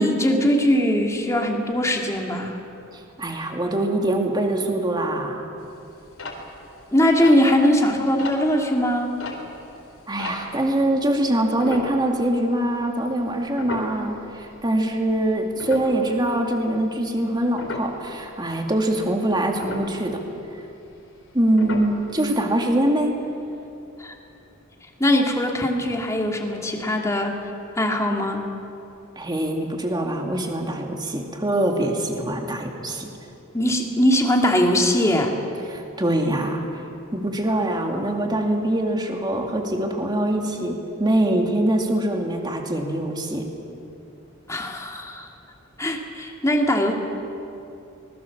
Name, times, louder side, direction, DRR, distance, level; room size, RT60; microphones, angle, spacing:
voice 1, 0.0-2.6 6.9-9.1 24.0-24.1 25.0-27.3 27.8-28.4 33.5-35.3 44.5-45.3 45.8-46.9, equal, 15° left, 1 dB, 2.4 m, -21 dB
voice 2, 2.9-5.4 10.1-20.2 21.3-23.2 29.2-33.1 35.7-36.8 37.1-43.5, right 1 dB, 20° right, 2 dB, 2.4 m, -23 dB
sound 1, 5.6-10.8 11.6-12.6 12.9-13.1 13.5-14.8 15.2-18.1 18.5-19.0 19.3-21.3 21.6-22.4 22.7-22.8 23.0-23.2 23.6-23.7, left 2 dB, 65° left, 3.8 m, -36 dB
25.0 x 20.5 x 7.3 m, 2.8 s
head